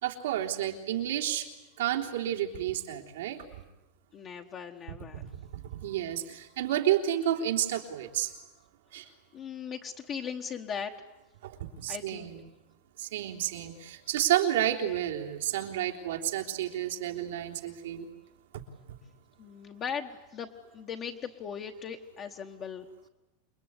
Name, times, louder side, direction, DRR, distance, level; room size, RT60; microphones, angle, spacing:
voice 1, 0.0-1.5 1.8-3.4 5.2-8.3 8.9-9.1 11.4-12.5 13.0-18.1 18.5-18.6, right 12 dB, 90° right, 1 dB, 3.5 m, -31 dB
voice 2, 4.1-5.2 9.3-10.9 11.9-12.3 19.4-22.9, left 7 dB, 25° left, 2 dB, 1.2 m, -38 dB
28.5 x 21.5 x 9.7 m, 1.0 s
supercardioid pair, 165°, 0 cm